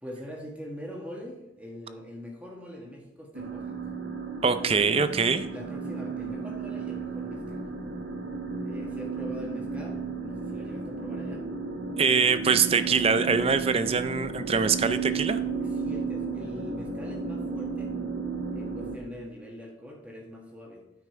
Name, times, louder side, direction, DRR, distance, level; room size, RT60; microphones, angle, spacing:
voice 1, 0.0-3.8 4.5-5.1 5.5-7.6 8.6-11.5 15.6-18.0 18.5-20.8, equal, 5° right, -2 dB, 1.4 m, -43 dB
sound 1, 3.3-19.0, right 4 dB, 75° right, 1.4 m, -34 dB
voice 2, 4.4-5.4 12.0-15.4, right 5 dB, 30° right, 11 dB, 0.5 m, -23 dB
9.4 x 5.8 x 4.5 m, 0.85 s
head